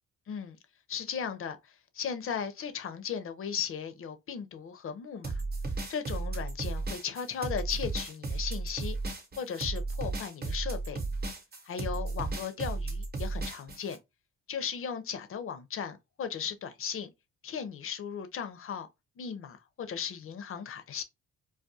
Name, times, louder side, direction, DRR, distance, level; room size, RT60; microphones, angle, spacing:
voice 1, 0.3-0.6 0.9-5.4 5.9-9.0 9.4-11.0 11.6-14.0 14.5-17.1 17.4-18.9 19.2-21.0, left 7 dB, 45° left, 0.6 m, -36 dB
sound 1, 5.2-14.0, right 3 dB, 35° right, 0.8 m, -34 dB
2.3 x 2.3 x 2.6 m
cardioid pair, 90°, 30 cm